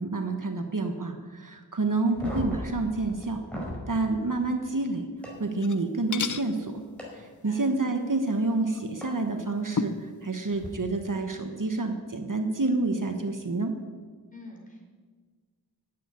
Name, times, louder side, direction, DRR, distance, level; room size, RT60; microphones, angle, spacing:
voice 1, 0.0-3.4 3.9-5.0 5.4-6.8 7.1-13.7, right 3 dB, 50° right, 5 dB, 1.2 m, -28 dB
sound 1, 2.1-3.8 5.2-5.3 7.0-7.1 9.0-9.1 10.5-10.7, equal, 5° left, 5.0 m, -36 dB
sound 2, 5.5-5.8 6.1-6.5 8.7-8.8 9.8-10.1, left 5 dB, 50° left, 0.7 m, -31 dB
voice 2, 7.2-7.7 14.3-14.9, left 2 dB, 20° left, -2 dB, 4.8 m, -47 dB
12.0 x 8.7 x 9.5 m, 1.5 s
wide cardioid pair, 60°, 40 cm